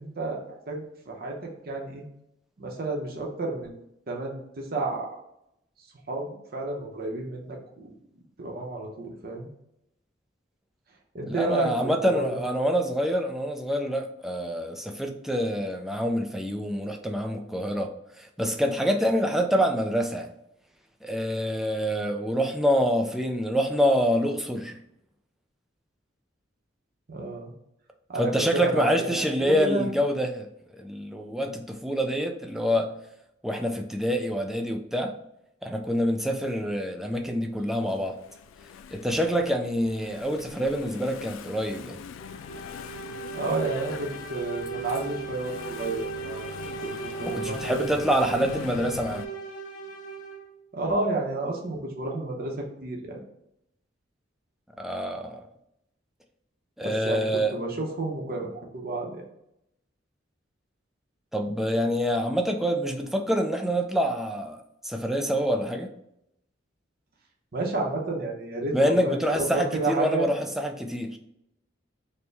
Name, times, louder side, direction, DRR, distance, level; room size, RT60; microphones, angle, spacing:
voice 1, 0.0-2.0 2.6-3.8 4.1-5.1 6.1-7.9 8.4-9.5 11.1-12.4 27.1-27.5 28.1-29.9 43.3-46.5 46.8-47.8 50.7-53.2 57.0-59.2 67.5-70.3, right 2 dB, 50° right, 0 dB, 0.7 m, -31 dB
voice 2, 11.3-20.3 21.0-24.8 28.2-30.5 30.8-32.9 33.4-35.1 35.6-38.2 38.9-42.0 47.2-49.3 54.8-55.4 56.8-57.6 61.3-64.6 64.8-65.9 68.7-71.2, equal, ahead, 3 dB, 0.3 m, -26 dB
Engine / Mechanisms, 37.1-49.2, left 7 dB, 85° left, 0.3 m, -43 dB
sound 1, 42.2-50.6, right 4 dB, 40° left, 0.6 m, -37 dB
4.3 x 2.1 x 3.3 m, 0.80 s
head